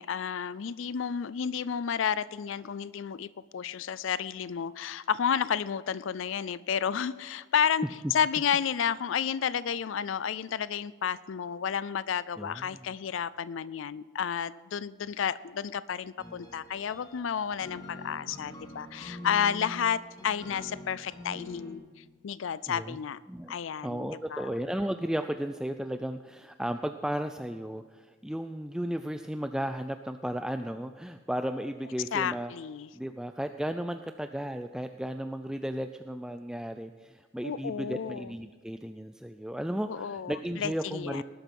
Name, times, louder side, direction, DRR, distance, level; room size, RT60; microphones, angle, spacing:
voice 1, 0.0-7.8 8.1-23.2 23.5-24.5 32.1-32.9 37.4-38.3 39.9-41.2, left 7 dB, 65° left, 18 dB, 0.4 m, -31 dB
voice 2, 12.4-12.8 22.7-23.0 23.3-23.5 23.8-32.5 32.9-41.2, equal, 5° right, 8 dB, 0.4 m, -34 dB
sound 1, 16.2-21.7, left 1 dB, 20° left, 2.7 m, -45 dB
19.0 x 12.0 x 5.4 m, 1.5 s
head